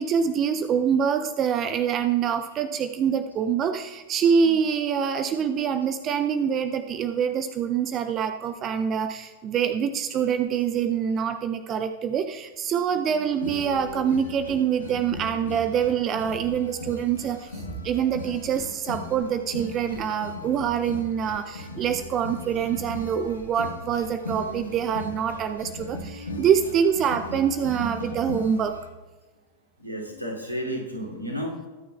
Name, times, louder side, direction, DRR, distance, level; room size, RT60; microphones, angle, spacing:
voice 1, 0.0-28.7, right 7 dB, 30° right, 10 dB, 0.6 m, -25 dB
sound 1, 13.3-28.9, left 2 dB, 70° left, 1.4 m, -38 dB
voice 2, 29.8-31.7, equal, 85° right, -3 dB, 2.8 m, -32 dB
22.0 x 9.3 x 2.4 m, 1.3 s
figure-of-eight pair, 90°, 0 cm